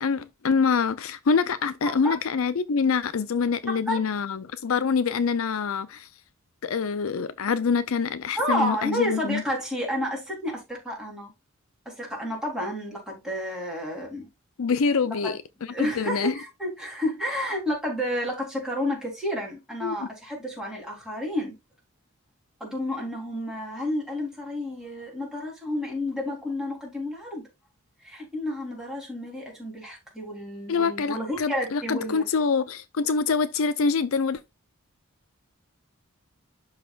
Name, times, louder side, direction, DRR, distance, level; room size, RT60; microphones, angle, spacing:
voice 1, 0.0-6.1 6.6-9.4 14.6-15.4 15.8-16.3 19.8-20.1 30.7-34.4, left 5 dB, 65° left, 0.5 m, -25 dB
voice 2, 1.8-2.2 3.7-4.0 8.4-11.3 11.9-14.3 15.0-15.4 15.7-21.5 22.6-27.4 28.0-32.2, left 1 dB, 5° right, 3.4 m, -31 dB
12.0 x 4.1 x 2.4 m
head